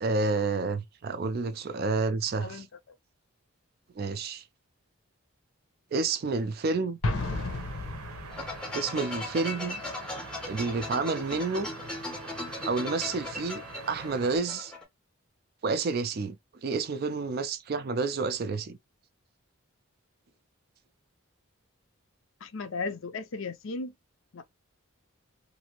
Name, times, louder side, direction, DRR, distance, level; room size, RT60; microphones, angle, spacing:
voice 1, 0.0-2.7 4.0-4.4 5.9-7.0 8.7-9.8 10.5-11.7 12.7-14.7 15.6-16.4 16.6-18.8, right 4 dB, 45° right, 0.4 m, -29 dB
Explosion, 7.0-8.7, left 2 dB, 90° left, 0.8 m, -32 dB
sound 1, 7.2-14.4, right 4 dB, 90° right, 0.8 m, -44 dB
sound 2, 8.3-14.8, left 2 dB, 5° left, 0.7 m, -38 dB
voice 2, 22.4-23.9 24.3-24.4, left 3 dB, 65° left, 0.5 m, -35 dB
2.7 x 2.5 x 2.9 m
head